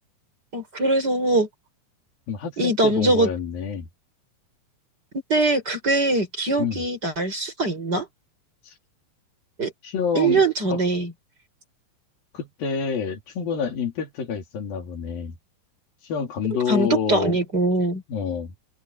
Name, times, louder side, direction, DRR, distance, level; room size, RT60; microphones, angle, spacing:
voice 1, 0.5-1.5 2.6-3.3 5.3-8.1 9.6-9.7 10.1-11.1 16.7-18.0, right 2 dB, 25° right, 6.5 m, -22 dB
voice 2, 2.3-3.9 6.6-6.8 8.6-8.7 9.8-10.4 10.7-10.8 12.3-15.3 16.0-17.4 18.1-18.5, left 6 dB, 85° left, 5.0 m, -28 dB
open air
omnidirectional pair, 4.0 m